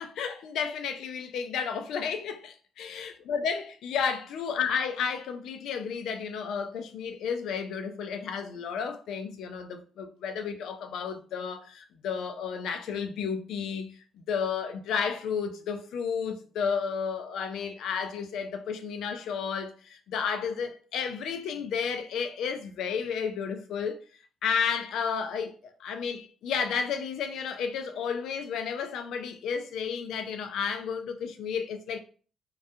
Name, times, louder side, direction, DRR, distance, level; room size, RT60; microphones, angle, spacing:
voice 1, 0.0-13.9 14.3-24.0 24.4-25.5 25.8-32.0, left 6 dB, 80° left, 0.3 m, -32 dB
2.2 x 2.2 x 2.6 m
cardioid pair, 90°, 0 cm